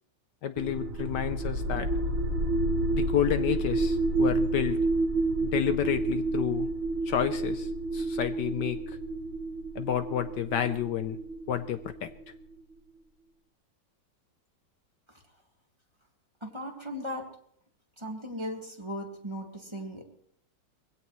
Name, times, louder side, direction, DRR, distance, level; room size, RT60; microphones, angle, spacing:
voice 1, 0.4-1.9 2.9-4.8 5.4-6.7 7.1-8.8 9.7-11.2 11.5-12.1, left 10 dB, 70° left, 10 dB, 1.3 m, -30 dB
sound 1, 0.6-12.4, right 2 dB, 75° right, 2.0 m, -30 dB
voice 2, 16.4-17.3 18.0-20.0, equal, 15° right, 1 dB, 1.9 m, -37 dB
22.5 x 16.5 x 3.1 m, 0.66 s
omnidirectional pair, 2.0 m